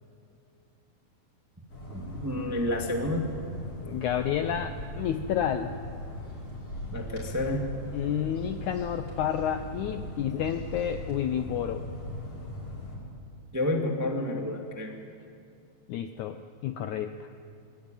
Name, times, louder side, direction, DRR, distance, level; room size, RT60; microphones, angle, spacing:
Outside with Birds, 1.7-13.0, equal, 40° left, 6.6 m, -39 dB
voice 1, 2.1-3.2 6.9-7.7 13.5-15.0, left 1 dB, 10° right, 1 dB, 0.8 m, -29 dB
voice 2, 3.8-5.7 7.9-11.8 15.9-17.3, left 9 dB, 75° left, 8 dB, 1.8 m, -30 dB
22.0 x 21.0 x 9.1 m, 2.5 s
omnidirectional pair, 4.2 m